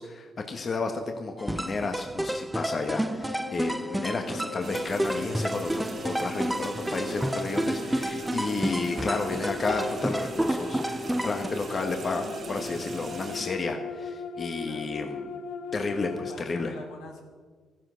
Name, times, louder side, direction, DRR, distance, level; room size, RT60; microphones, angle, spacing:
voice 1, 0.0-15.3 15.7-16.7, left 3 dB, 40° left, 4 dB, 1.4 m, -32 dB
sound 1, 1.4-11.5, right 1 dB, 5° right, 0.4 m, -31 dB
sound 2, 2.9-16.3, left 6 dB, 70° left, 1.1 m, -39 dB
sound 3, 4.6-13.5, right 4 dB, 45° right, 1.6 m, -41 dB
voice 2, 15.9-17.2, left 3 dB, 85° left, 2 dB, 2.9 m, -44 dB
14.5 x 11.0 x 6.3 m, 1.5 s
cardioid pair, 90°, 0 cm